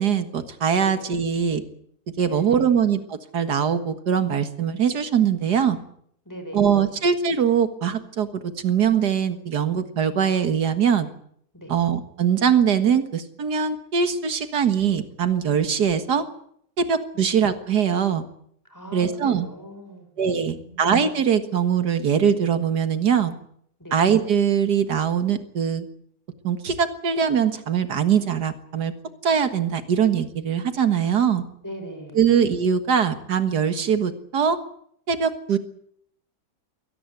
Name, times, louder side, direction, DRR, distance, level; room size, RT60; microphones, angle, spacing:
voice 1, 0.0-1.6 2.2-5.8 6.5-11.1 11.7-16.3 16.8-18.2 18.9-19.5 20.2-23.3 23.9-25.9 26.4-28.9 29.2-31.4 32.1-34.6 35.1-35.6, right 7 dB, 85° right, 9 dB, 2.2 m, -22 dB
voice 2, 2.3-2.8 6.3-7.0 11.5-11.7 17.1-17.3 18.7-20.8 23.8-24.0 31.6-32.4, equal, 10° left, 5 dB, 6.2 m, -40 dB
23.0 x 18.5 x 8.1 m, 0.67 s
omnidirectional pair, 1.7 m